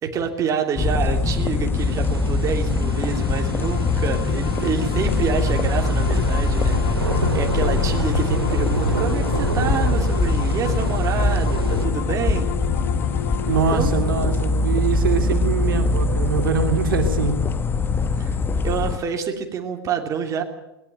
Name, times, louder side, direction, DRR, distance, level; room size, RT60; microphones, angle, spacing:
voice 1, 0.0-12.5 13.7-13.9 18.2-18.3 18.6-20.4, right 7 dB, 25° right, 3 dB, 3.0 m, -27 dB
sound 1, 0.8-19.0, left 3 dB, 15° left, 1.2 m, -22 dB
sound 2, 1.8-11.8, right 3 dB, 80° right, 2.1 m, -29 dB
sound 3, 2.7-16.2, left 11 dB, 50° left, 1.2 m, -35 dB
voice 2, 13.4-17.4, right 6 dB, 65° right, 6 dB, 2.7 m, -23 dB
21.0 x 18.5 x 8.9 m, 0.95 s
figure-of-eight pair, 95°, 12 cm